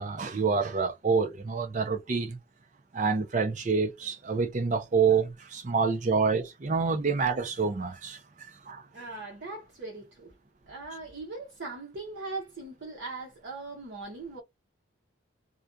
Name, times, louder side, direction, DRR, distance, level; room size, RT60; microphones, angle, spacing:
voice 1, 0.0-2.4 2.9-8.2 8.7-8.8, right 5 dB, 40° right, 0.5 m, -27 dB
voice 2, 8.9-10.3 10.7-14.4, right 3 dB, 60° right, 0.8 m, -40 dB
2.4 x 2.2 x 2.5 m
head